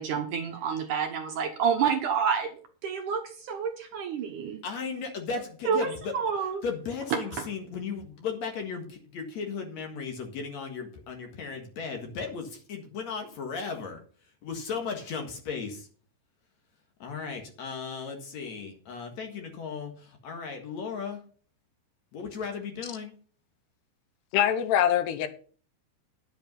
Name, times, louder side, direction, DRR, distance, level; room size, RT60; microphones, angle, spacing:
voice 1, 0.0-2.5 2.8-4.6 5.7-6.6, right 6 dB, 65° right, 2.2 m, -28 dB
voice 2, 4.6-6.1 6.6-14.0 14.4-15.9 17.0-21.2 22.1-23.1, left 5 dB, 55° left, 2.4 m, -36 dB
voice 3, 24.3-25.3, left 10 dB, 90° left, 3.1 m, -23 dB
10.0 x 8.0 x 5.4 m
omnidirectional pair, 4.7 m